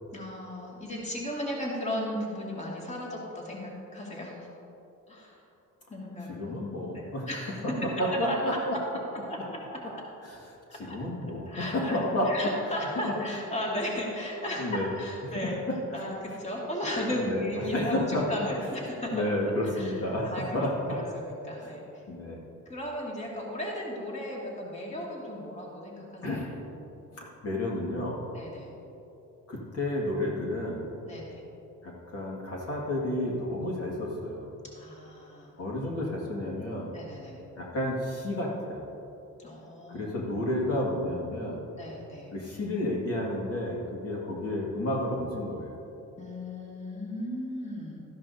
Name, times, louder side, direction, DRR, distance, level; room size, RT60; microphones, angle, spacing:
voice 1, 0.1-4.5 5.1-5.4 5.9-6.5 6.9-7.9 8.3-8.6 9.3-9.4 9.7-10.0 10.7-11.0 11.5-12.0 12.2-15.6 15.9-20.0 20.3-22.0 22.7-26.3 28.3-28.7 31.1-31.4 34.7-35.6 36.9-37.4 39.4-40.3 41.7-42.3 46.2-48.0, left 1 dB, 25° left, -4 dB, 2.3 m, -36 dB
voice 2, 6.3-7.3 8.0-8.8 9.4-9.5 10.2-10.4 10.7-12.3 13.0-13.1 14.5-14.9 15.7-16.0 17.2-18.2 19.1-21.0 21.6-21.7 22.1-22.4 26.2-26.5 27.1-28.2 29.5-30.9 31.8-34.5 35.6-36.9 37.6-38.9 39.9-41.6 42.3-45.8, left 1 dB, 55° left, -3 dB, 2.2 m, -31 dB
13.5 x 10.5 x 2.8 m, 2.9 s
cardioid pair, 90°, 30 cm